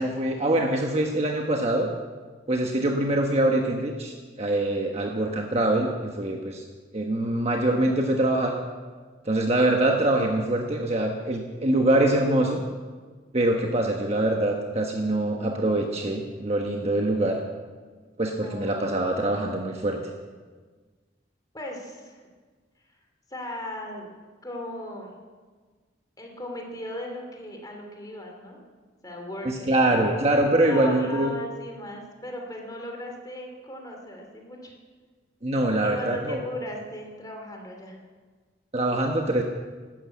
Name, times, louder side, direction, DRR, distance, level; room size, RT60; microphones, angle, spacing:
voice 1, 0.0-1.9 2.5-6.6 6.9-8.6 9.2-12.6 13.3-17.4 18.2-20.0 29.4-31.3 35.4-36.4 38.7-39.4, right 1 dB, 35° right, 1 dB, 1.2 m, -24 dB
voice 2, 18.3-19.5 21.5-22.2 23.3-24.1 24.4-25.2 26.2-28.6 29.0-30.1 30.6-34.7 35.8-38.0, left 1 dB, 20° left, 2 dB, 2.7 m, -37 dB
12.5 x 12.5 x 8.5 m, 1.5 s
head